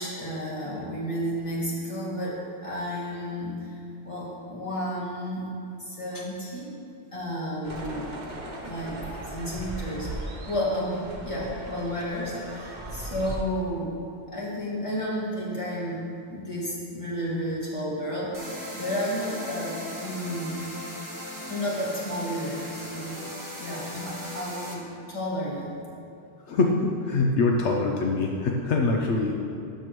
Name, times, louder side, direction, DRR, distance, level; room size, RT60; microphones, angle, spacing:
voice 1, 0.0-2.4 2.6-3.8 4.0-5.5 5.8-6.7 7.1-8.1 8.6-9.0 9.3-10.1 10.5-13.9 14.3-20.6 21.5-23.2 23.6-25.7, equal, 30° left, -6 dB, 2.0 m, -32 dB
sound 1, 7.6-13.4, right 1 dB, 40° right, 1.0 m, -38 dB
sound 2, 18.3-24.7, equal, 15° right, 1.3 m, -38 dB
voice 2, 26.5-29.3, left 3 dB, 75° left, 0 dB, 1.0 m, -24 dB
12.5 x 7.0 x 3.1 m, 2.6 s
omnidirectional pair, 1.2 m